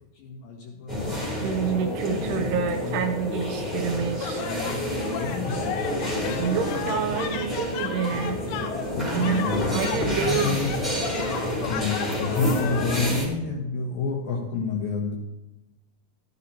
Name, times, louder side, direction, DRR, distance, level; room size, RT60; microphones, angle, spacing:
voice 1, 0.2-1.0 2.3-3.0 4.3-4.8 5.1-5.8 8.9-10.7 11.7-15.2, left 4 dB, 65° left, 0 dB, 2.6 m, -30 dB
sound 1, 0.9-13.3, equal, ahead, 2.2 m, -29 dB
voice 2, 1.4-4.4 6.4-8.4 9.1-9.4 9.7-10.6, right 6 dB, 80° right, 6 dB, 2.6 m, -27 dB
sound 2, 4.2-13.1, left 7 dB, 85° left, 3.0 m, -34 dB
13.0 x 11.5 x 2.8 m, 0.94 s
omnidirectional pair, 5.0 m